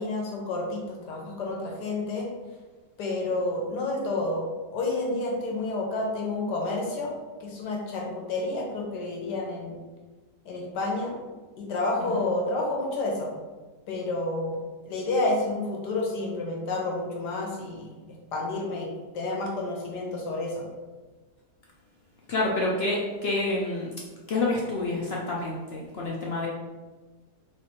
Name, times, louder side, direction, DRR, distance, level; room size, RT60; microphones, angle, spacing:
voice 1, 0.0-2.3 3.0-4.4 4.7-9.8 10.4-11.2 11.6-13.3 13.9-14.6 14.8-17.9 18.3-18.9 19.1-20.7, left 2 dB, 90° left, -1 dB, 1.5 m, -30 dB
voice 2, 22.3-23.9 24.3-26.5, left 2 dB, 65° left, -4 dB, 0.6 m, -28 dB
3.3 x 3.3 x 4.2 m, 1.3 s
omnidirectional pair, 1.7 m